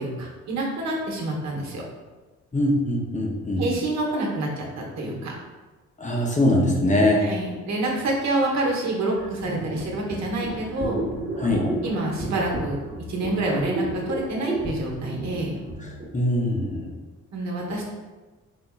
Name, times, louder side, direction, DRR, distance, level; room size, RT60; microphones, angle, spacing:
voice 1, 0.0-1.8 3.6-5.3 7.2-11.0 11.8-12.8 13.1-15.6 17.3-17.8, right 2 dB, 65° right, -1 dB, 1.1 m, -27 dB
voice 2, 2.5-3.7 6.0-7.3 11.4-11.7 16.1-16.9, left 1 dB, 25° left, -1 dB, 0.7 m, -22 dB
sound 1, 9.2-16.0, right 2 dB, 25° right, 0.9 m, -32 dB
4.0 x 3.4 x 2.3 m, 1.2 s
cardioid pair, 90°, 30 cm